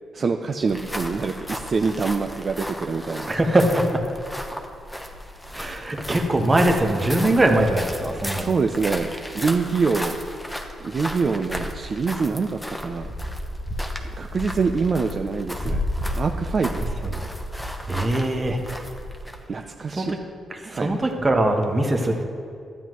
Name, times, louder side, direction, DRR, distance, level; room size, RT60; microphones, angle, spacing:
voice 1, 0.1-3.3 8.3-10.2 10.8-13.1 14.2-15.8 16.1-17.0 19.5-20.1 20.7-21.0, right 4 dB, 45° right, 4 dB, 0.4 m, -25 dB
sound 1, 0.6-19.5, equal, 5° left, 0.9 m, -33 dB
voice 2, 3.3-4.0 5.5-8.5 17.0-17.3 17.9-18.6 19.9-20.2 20.5-22.2, right 1 dB, 25° right, 4 dB, 1.1 m, -22 dB
12.5 x 9.1 x 3.1 m, 2.3 s
cardioid pair, 95°, 0 cm